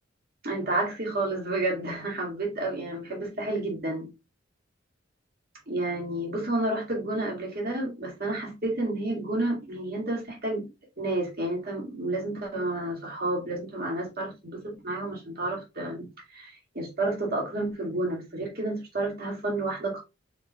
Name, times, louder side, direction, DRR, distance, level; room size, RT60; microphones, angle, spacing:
voice 1, 0.4-4.1 5.7-10.7 11.0-20.0, right 2 dB, 50° right, 1.9 m, -30 dB
5.2 x 4.3 x 2.2 m
head